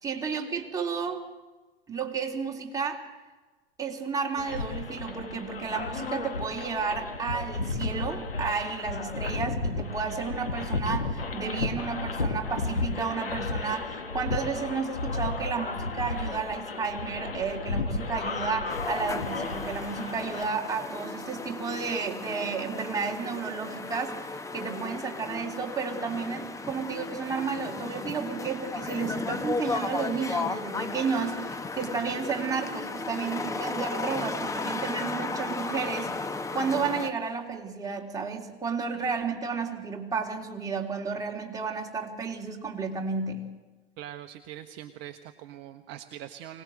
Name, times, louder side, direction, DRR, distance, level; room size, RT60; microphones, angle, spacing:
voice 1, 0.0-1.2 1.9-3.0 3.8-36.2 36.5-43.5, right 5 dB, 10° right, -1 dB, 3.5 m, -32 dB
sound 1, 4.4-20.5, left 3 dB, 80° left, 2.1 m, -33 dB
sound 2, 18.7-37.1, left 3 dB, 10° left, 1.2 m, -35 dB
voice 2, 44.0-46.6, right 11 dB, 40° right, 7 dB, 1.1 m, -42 dB
24.5 x 18.5 x 7.9 m, 1.3 s
figure-of-eight pair, 95°, 29 cm